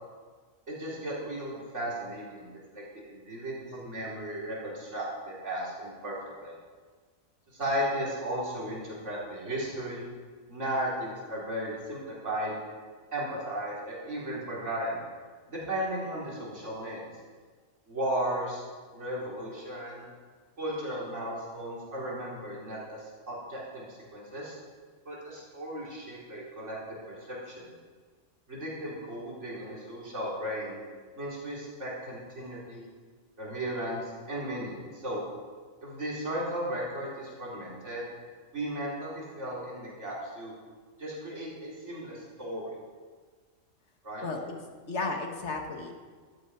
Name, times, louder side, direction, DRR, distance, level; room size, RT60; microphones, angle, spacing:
voice 1, 0.7-6.5 7.5-10.0 10.5-12.5 13.1-15.0 15.5-17.0 17.9-18.6 18.9-20.0 20.6-24.6 25.1-27.7 28.5-30.8 31.2-32.9 33.4-35.2 35.8-38.0 38.5-40.5 41.0-42.7 44.0-44.2, right 1 dB, 70° right, -6 dB, 3.8 m, -35 dB
voice 2, 44.2-45.9, left 3 dB, 65° left, 2 dB, 1.9 m, -34 dB
15.0 x 12.0 x 4.8 m, 1.5 s
omnidirectional pair, 1.3 m